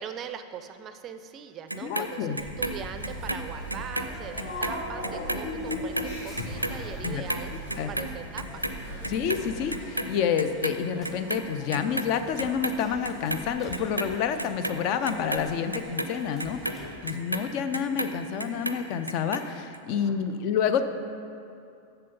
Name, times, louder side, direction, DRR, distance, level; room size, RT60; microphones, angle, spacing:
voice 1, 0.0-7.5 7.9-8.6 19.9-20.2, right 8 dB, 30° right, 10 dB, 0.4 m, -41 dB
Clock, 1.7-4.1 4.4-10.8 11.0-12.1 12.4-13.4 13.7-18.1 18.4-19.4 19.7-19.8, right 1 dB, 85° right, 0.4 m, -32 dB
voice 2, 1.8-2.4 7.0-7.2 7.8-7.9 9.1-16.6 17.0-20.9, left 7 dB, 45° left, 10 dB, 0.5 m, -28 dB
sound 1, 2.4-9.7, equal, 65° left, 2.4 m, -38 dB
sound 2, 2.9-17.0, left 1 dB, 15° left, 1.4 m, -48 dB
7.5 x 6.9 x 5.5 m, 2.5 s
figure-of-eight pair, 90°, 0 cm